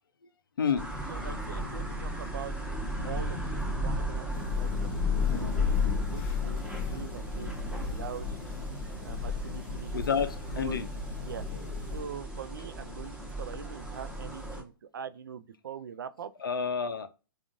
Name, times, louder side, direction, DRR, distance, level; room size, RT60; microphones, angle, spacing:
voice 1, 0.6-0.9 9.9-10.9 16.4-17.1, left 6 dB, 70° left, 0.5 m, -29 dB
sound 1, 0.8-14.6, right 1 dB, 5° right, 1.0 m, -37 dB
voice 2, 1.1-5.5 5.9-8.4 9.0-10.1 10.5-10.8 11.2-11.5 11.9-16.3, right 7 dB, 65° right, 0.4 m, -43 dB
Thunder / Rain, 4.3-12.0, left 6 dB, 35° left, 0.7 m, -33 dB
3.6 x 2.4 x 2.5 m
figure-of-eight pair, 120°, 12 cm